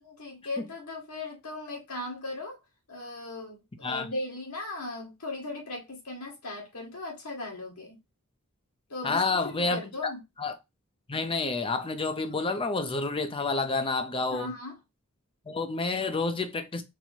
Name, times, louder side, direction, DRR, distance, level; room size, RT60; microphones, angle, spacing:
voice 1, 0.0-2.6 2.9-8.0 8.9-10.2 14.3-14.8, left 2 dB, 85° left, 1.8 m, -38 dB
voice 2, 9.0-9.8 10.4-10.6 11.1-14.5 15.5-16.8, left 3 dB, 25° left, 0.5 m, -29 dB
4.2 x 2.0 x 4.4 m
head